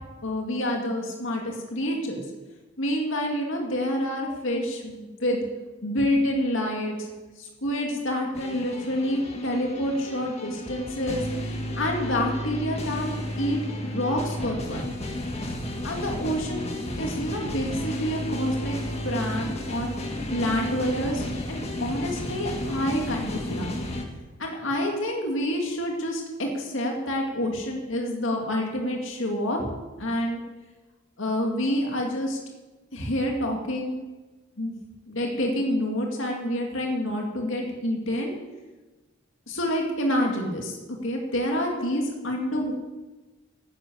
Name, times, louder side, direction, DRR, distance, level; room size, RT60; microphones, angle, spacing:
voice 1, 0.2-2.2 2.8-5.4 5.8-7.1 7.4-11.2 11.8-13.1 13.4-14.8 15.8-18.8 19.0-20.0 20.3-23.8 24.4-29.6 30.0-30.4 31.2-32.4 32.9-34.0 34.6-34.7 35.1-38.3 39.5-40.7 41.0-42.7, left 1 dB, 65° left, 1 dB, 2.4 m, -28 dB
sound 1, 8.3-24.1, left 1 dB, 30° left, 1.7 m, -32 dB
11.0 x 10.5 x 8.3 m, 1.2 s
head